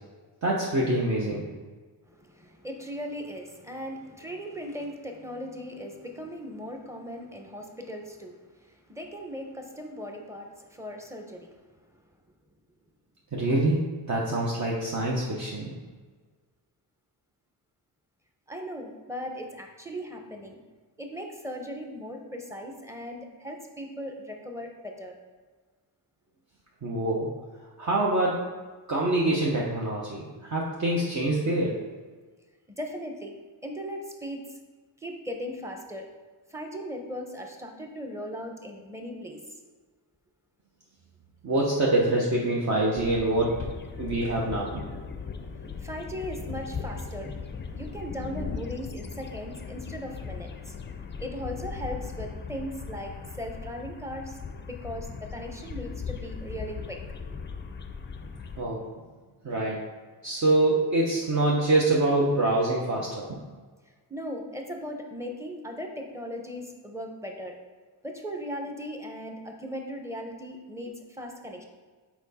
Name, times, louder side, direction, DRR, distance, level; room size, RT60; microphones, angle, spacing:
voice 1, 0.4-1.4 13.3-13.8 14.1-15.7 26.8-27.3 27.8-28.4 28.9-31.7 41.4-43.6 44.0-44.8 58.6-58.9 59.4-59.8 60.2-63.4, right 2 dB, 40° right, -4 dB, 1.0 m, -25 dB
voice 2, 2.1-11.5 18.5-20.6 21.0-25.2 32.8-33.3 33.6-34.4 35.0-36.1 36.5-39.4 45.8-47.3 47.7-50.7 51.2-57.0 64.1-67.5 68.0-71.6, equal, 5° right, 3 dB, 0.9 m, -38 dB
sound 1, 43.0-58.6, left 5 dB, 25° left, 0.5 m, -38 dB
6.1 x 4.7 x 4.2 m, 1.4 s
cardioid pair, 95°, 43 cm